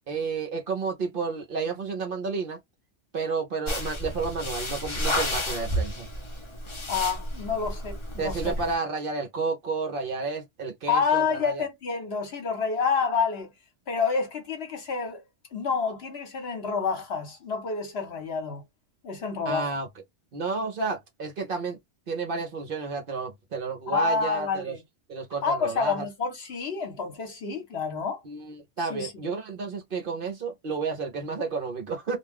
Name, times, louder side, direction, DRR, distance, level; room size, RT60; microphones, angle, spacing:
voice 1, 0.1-2.6 3.1-6.1 8.2-11.6 19.4-19.9 20.3-21.8 22.1-24.7 25.1-26.1 28.2-32.2, right 4 dB, 55° right, 0.8 m, -31 dB
sound 1, 3.7-8.7, left 1 dB, 30° left, 0.7 m, -31 dB
voice 2, 6.9-8.7 10.9-13.5 13.9-15.2 15.5-18.6 19.0-19.7 23.9-24.8 25.4-28.2 28.8-29.1, left 5 dB, 60° left, 1.1 m, -28 dB
2.3 x 2.3 x 3.3 m
omnidirectional pair, 1.3 m